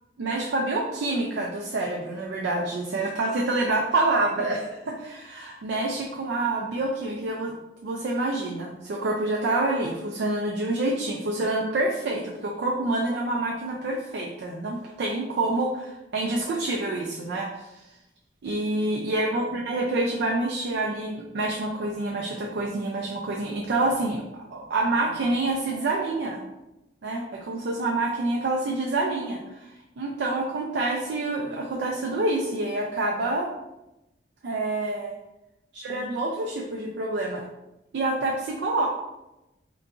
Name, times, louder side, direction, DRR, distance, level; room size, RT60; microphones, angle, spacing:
voice 1, 0.2-7.5 7.8-17.8 18.4-24.2 24.5-26.4 27.0-33.5 34.4-35.2 35.7-37.4 37.9-38.9, right 2 dB, 65° right, -1 dB, 0.4 m, -27 dB
3.8 x 2.4 x 2.3 m, 0.96 s
head